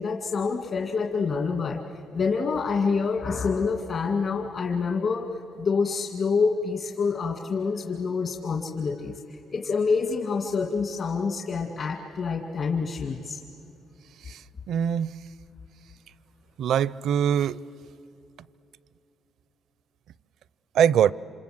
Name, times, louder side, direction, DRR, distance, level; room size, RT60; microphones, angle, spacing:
voice 1, 0.0-1.8 2.1-5.3 5.6-13.4, left 5 dB, 55° left, 2.1 m, -27 dB
voice 2, 14.7-15.1 16.6-17.6 20.7-21.1, right 9 dB, 75° right, 0.5 m, -22 dB
27.5 x 27.5 x 7.9 m
cardioid pair, 90°, 0 cm